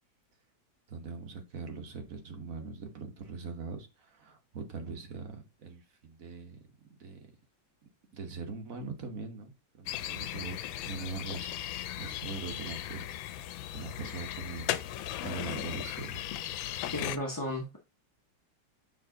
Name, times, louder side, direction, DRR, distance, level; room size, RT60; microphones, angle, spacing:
voice 1, 0.9-6.6 7.0-7.3 8.1-13.5 13.7-16.2 16.7-17.0, right 4 dB, 50° right, 1.4 m, -42 dB
sound 1, 9.9-17.2, left 12 dB, 90° left, 1.3 m, -37 dB
voice 2, 16.9-17.8, left 1 dB, 20° left, 0.5 m, -34 dB
6.9 x 3.5 x 3.8 m
omnidirectional pair, 2.1 m